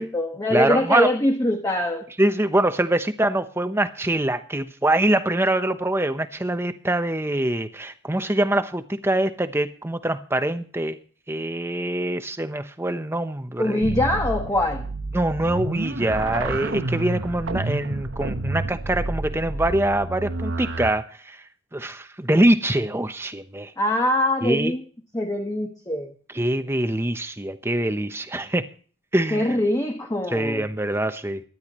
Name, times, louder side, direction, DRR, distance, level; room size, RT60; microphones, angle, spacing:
voice 1, 0.0-2.0 13.6-14.8 23.8-24.8 25.1-26.1 29.3-30.7, left 1 dB, 20° left, 1.3 m, -23 dB
voice 2, 0.5-1.1 2.2-11.0 11.3-13.8 15.1-21.4 21.7-23.7 24.4-24.7 26.3-28.7 29.1-29.6 30.3-31.4, right 1 dB, 15° right, 0.9 m, -24 dB
sound 1, 13.8-20.9, right 2 dB, 90° right, 1.1 m, -29 dB
23.5 x 10.5 x 3.1 m
head